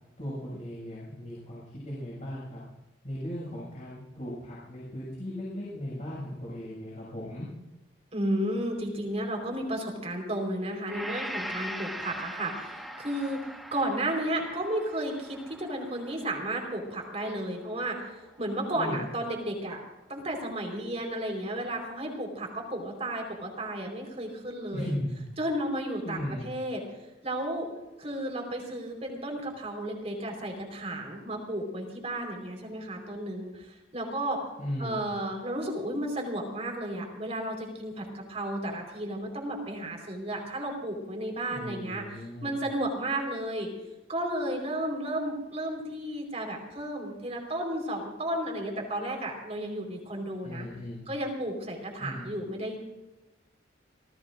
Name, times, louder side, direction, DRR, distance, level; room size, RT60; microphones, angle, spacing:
voice 1, 0.2-2.6 3.0-7.5 18.7-19.0 24.7-25.2 26.0-26.4 34.6-35.0 41.5-42.6 50.4-51.0 52.0-52.3, equal, 40° left, -7 dB, 6.6 m, -37 dB
voice 2, 8.1-13.4 13.7-19.8 20.1-24.9 25.4-26.8 27.2-27.7 28.0-34.4 34.8-43.7 44.1-50.7 51.1-52.8, right 1 dB, 30° right, 2 dB, 4.4 m, -33 dB
Gong, 10.9-18.9, equal, ahead, 1.5 m, -42 dB
28.0 x 19.0 x 2.6 m, 1.0 s
head